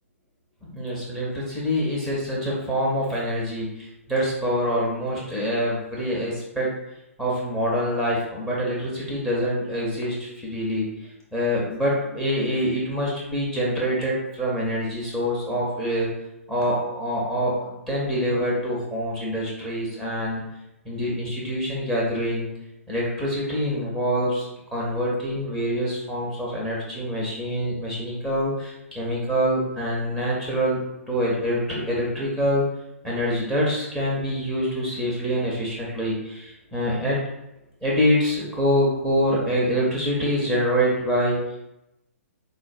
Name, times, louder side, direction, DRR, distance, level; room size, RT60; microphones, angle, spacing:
voice 1, 0.7-3.7 4.1-6.7 7.2-10.9 11.3-16.1 16.5-20.4 20.8-22.5 22.9-30.8 31.1-32.6 33.0-37.2 37.8-41.4, equal, 5° left, -6 dB, 0.6 m, -25 dB
3.7 x 2.5 x 2.3 m, 0.89 s
figure-of-eight pair, 125°, 8 cm